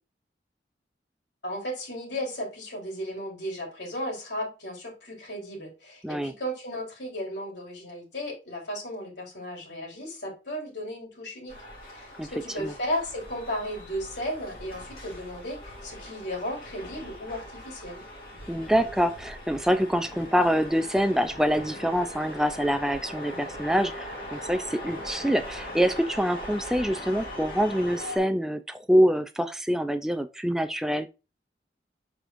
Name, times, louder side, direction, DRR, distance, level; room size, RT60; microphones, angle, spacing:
voice 1, 1.4-11.6 11.9-18.1, equal, 75° left, 3.5 m, -35 dB
sound 1, 11.5-28.2, left 1 dB, 50° left, 2.4 m, -41 dB
voice 2, 18.5-24.1 24.3-31.1, equal, 5° right, 0.3 m, -25 dB
7.5 x 5.0 x 2.5 m
head